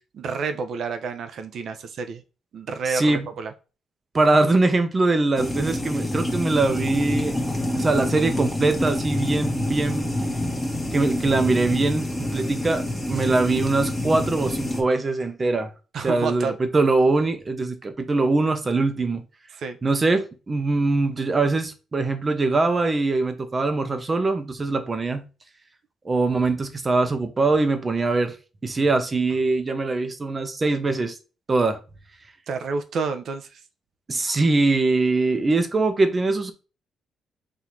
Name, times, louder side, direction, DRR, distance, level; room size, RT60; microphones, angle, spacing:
voice 1, 0.1-2.2 2.5-3.5 13.3-13.4 15.9-16.6 19.6-19.8 32.5-33.5, right 5 dB, 60° right, 0.7 m, -29 dB
voice 2, 2.9-3.3 4.1-7.4 7.8-10.1 10.9-15.7 16.0-19.2 19.8-25.2 26.0-28.4 28.6-31.2 31.5-31.8 34.1-36.5, right 3 dB, 30° right, 0.8 m, -22 dB
sound 1, 5.4-14.8, left 1 dB, 10° left, 1.3 m, -27 dB
4.1 x 2.7 x 4.6 m
cardioid pair, 90°, 0 cm